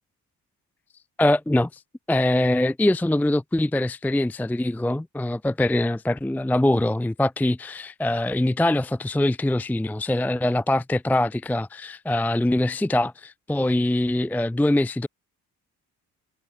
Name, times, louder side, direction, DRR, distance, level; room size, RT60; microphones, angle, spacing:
voice 1, 1.2-1.8 2.1-15.1, left 1 dB, 5° left, 0.6 m, -23 dB
figure-of-eight pair, 40°, 46 cm